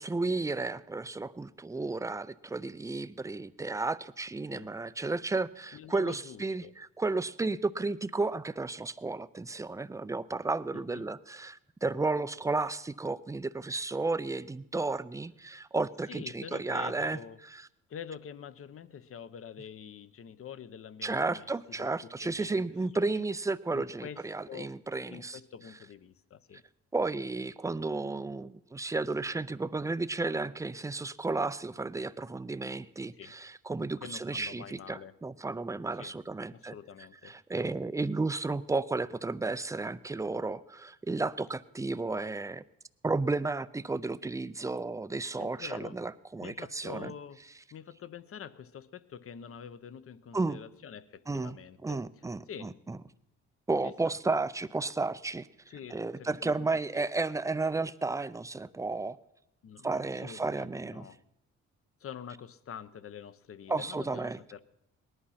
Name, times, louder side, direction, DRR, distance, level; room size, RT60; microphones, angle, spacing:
voice 1, 0.0-17.2 17.5-17.7 21.0-25.4 26.9-36.7 37.2-42.6 43.0-47.1 50.3-50.6 51.3-51.6 51.8-53.0 53.7-55.5 55.9-59.2 59.8-61.1 63.7-64.4, right 3 dB, 10° right, 15 dB, 0.4 m, -33 dB
voice 2, 5.7-6.7 10.9-11.1 16.1-17.4 17.9-22.5 22.9-23.2 23.7-24.2 24.5-24.7 25.1-26.6 33.2-33.3 34.0-35.2 36.0-36.1 36.5-37.3 45.4-46.0 46.4-47.4 47.7-52.0 52.5-52.7 53.8-53.9 55.7-57.0 59.6-61.2 62.0-64.6, left 8 dB, 50° left, 15 dB, 0.8 m, -46 dB
18.5 x 11.0 x 5.7 m, 0.83 s
cardioid pair, 90°, 30 cm